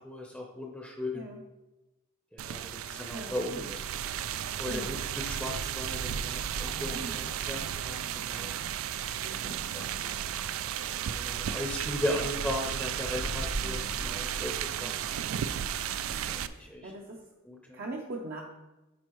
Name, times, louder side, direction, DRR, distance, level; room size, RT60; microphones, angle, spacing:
voice 1, 0.0-1.3 2.3-3.6 4.6-8.5 9.3-9.4 9.7-10.3 10.8-14.9 16.0-16.9 17.5-17.8, left 1 dB, 5° left, 0 dB, 0.7 m, -37 dB
sound 1, 2.4-16.5, right 9 dB, 75° right, 0.3 m, -34 dB
voice 2, 2.5-3.7 4.6-5.0 6.7-7.3 9.2-9.6 13.6-13.9 14.7-15.0 16.1-17.3 17.7-18.4, right 2 dB, 50° right, -2 dB, 0.8 m, -43 dB
sound 2, 13.0-15.3, left 1 dB, 65° left, 0.8 m, -39 dB
11.0 x 4.5 x 3.1 m, 1.0 s
head